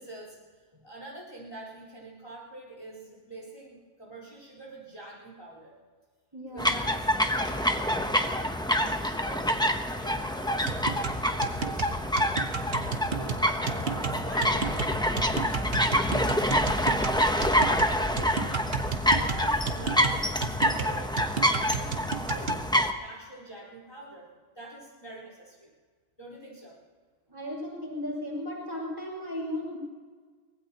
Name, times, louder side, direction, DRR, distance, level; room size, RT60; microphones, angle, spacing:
voice 1, 0.0-5.8 6.5-8.4 8.7-15.4 15.9-16.9 17.2-18.6 19.0-22.6 22.9-25.7 26.2-26.8, right 1 dB, 25° left, -3 dB, 4.4 m, -45 dB
voice 2, 6.3-6.7 27.3-29.8, left 1 dB, 20° right, -3 dB, 5.1 m, -35 dB
sound 1, 6.6-22.9, equal, 5° left, 0.8 m, -27 dB
sound 2, 10.7-22.6, right 5 dB, 60° right, 1.3 m, -33 dB
24.0 x 19.5 x 3.0 m, 1.5 s
omnidirectional pair, 1.2 m